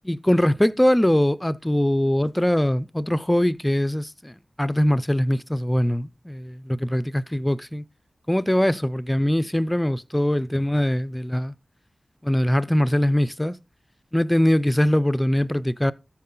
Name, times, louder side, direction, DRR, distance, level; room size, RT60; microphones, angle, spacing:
voice 1, 0.0-7.8 8.3-11.5 12.2-13.6 14.1-15.9, left 1 dB, 15° left, 0.5 m, -22 dB
13.0 x 4.5 x 3.8 m
cardioid pair, 40°, 0 cm